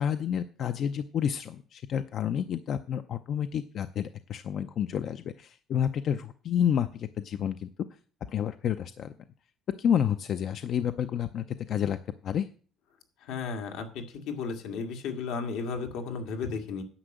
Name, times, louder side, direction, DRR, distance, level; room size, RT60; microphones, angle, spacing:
voice 1, 0.0-7.7 8.3-9.1 9.8-12.0 12.2-12.5, left 9 dB, 45° left, 10 dB, 0.5 m, -29 dB
voice 2, 13.3-16.8, left 5 dB, 80° left, 4 dB, 2.0 m, -34 dB
10.0 x 6.0 x 7.8 m, 0.41 s
cardioid pair, 165°, 0 cm